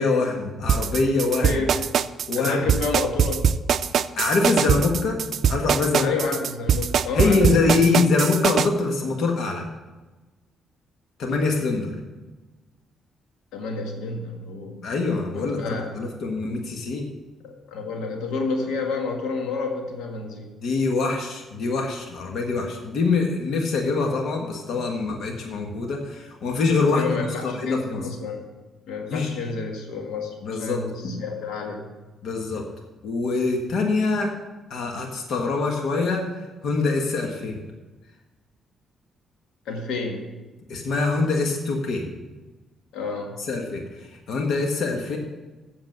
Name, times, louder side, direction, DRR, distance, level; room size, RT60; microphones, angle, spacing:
voice 1, 0.0-1.5 2.3-2.6 4.2-5.2 5.5-6.1 7.1-9.6 11.2-11.9 14.8-17.1 20.6-27.0 27.4-28.0 29.1-29.4 30.4-30.8 32.2-32.6 33.0-34.3 34.7-36.2 36.6-37.6 40.7-42.0 43.4-43.8 44.3-45.2, left 3 dB, 70° left, 2 dB, 1.4 m, -24 dB
sound 1, 0.7-8.7, right 8 dB, 60° right, 0.4 m, -22 dB
voice 2, 1.4-1.8 2.4-3.4 6.0-7.8 13.5-14.8 15.3-15.9 17.4-20.5 26.9-28.4 28.9-31.8 39.6-40.3 42.9-43.4, left 4 dB, 85° left, 2 dB, 1.6 m, -29 dB
8.0 x 7.0 x 7.5 m, 1.2 s
cardioid pair, 90°, 0 cm